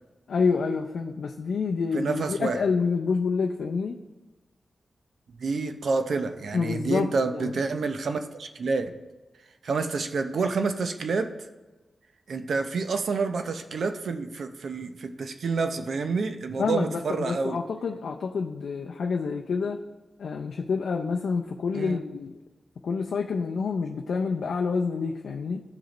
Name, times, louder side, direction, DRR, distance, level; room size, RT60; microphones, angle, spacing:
voice 1, 0.3-4.0 6.5-7.6 16.6-19.8 20.2-22.3 22.8-25.6, left 5 dB, 85° left, 2 dB, 0.4 m, -28 dB
voice 2, 1.9-2.6 5.4-8.9 9.6-11.3 12.3-17.6 21.7-22.0, right 4 dB, 70° right, 7 dB, 0.6 m, -28 dB
13.5 x 4.9 x 3.1 m, 1.2 s
wide cardioid pair, 165°, 0 cm